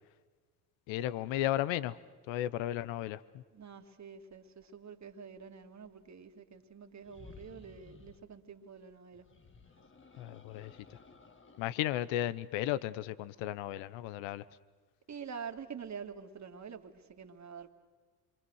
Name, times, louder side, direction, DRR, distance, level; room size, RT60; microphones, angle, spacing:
voice 1, 0.9-2.0 2.3-3.4 10.2-11.0 11.6-14.4, left 13 dB, 70° left, 1.0 m, -34 dB
voice 2, 3.5-9.3 15.1-17.7, right 6 dB, 35° right, 2.4 m, -47 dB
sound 1, 7.0-8.3 9.1-11.8, left 4 dB, 25° left, 1.7 m, -56 dB
27.5 x 24.0 x 6.5 m
supercardioid pair, 70°, 47 cm